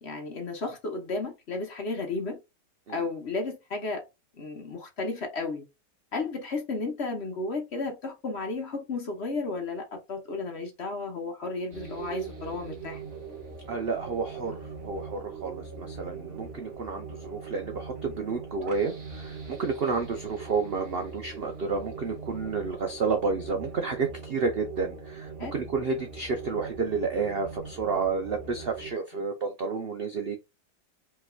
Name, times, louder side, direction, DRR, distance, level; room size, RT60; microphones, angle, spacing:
voice 1, 0.0-2.4 2.9-4.0 4.4-5.7 6.1-13.0 25.4-25.5, left 3 dB, 45° left, 1.0 m, -33 dB
sound 1, 11.7-28.9, right 5 dB, 35° right, 1.6 m, -41 dB
voice 2, 13.7-30.4, right 4 dB, 70° right, 0.5 m, -30 dB
5.4 x 2.9 x 2.4 m
omnidirectional pair, 1.9 m